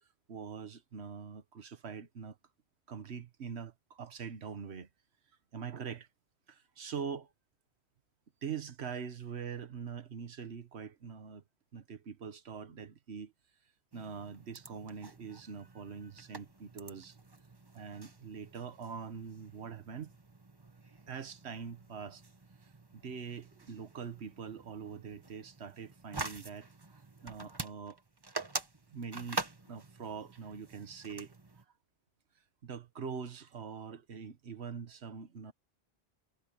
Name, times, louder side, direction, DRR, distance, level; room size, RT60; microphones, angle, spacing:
voice 1, 0.3-2.4 2.9-4.9 5.5-6.1 6.5-7.3 8.4-11.4 11.7-13.3 13.9-17.2 17.7-20.1 21.1-22.2 22.6-26.7 27.2-28.0 28.9-31.3 32.6-35.5, right 6 dB, 80° right, 1.4 m, -43 dB
sound 1, 13.9-31.6, right 3 dB, 25° right, 1.1 m, -46 dB
omnidirectional pair, 1.1 m